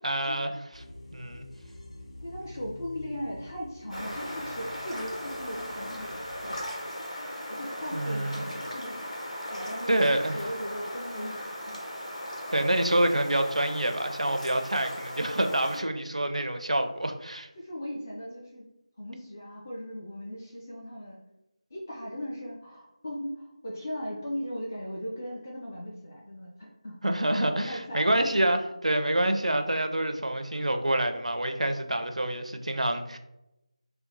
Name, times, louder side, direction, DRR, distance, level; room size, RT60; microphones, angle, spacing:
voice 1, 0.0-0.8 1.1-1.5 7.9-8.4 9.9-10.4 12.5-17.5 27.0-33.2, right 1 dB, 70° right, 6 dB, 0.4 m, -27 dB
sound 1, 0.7-6.7, left 1 dB, 60° left, 0.9 m, -47 dB
voice 2, 2.2-6.6 7.5-9.1 9.5-10.1 10.3-11.4 11.7-12.1 17.6-18.7 19.0-21.2 21.7-26.9 27.5-28.2, equal, 25° left, -4 dB, 0.4 m, -38 dB
sound 2, 3.9-15.8, equal, 85° left, 1.4 m, -38 dB
2.7 x 2.1 x 3.9 m, 0.89 s
figure-of-eight pair, 165°, 4 cm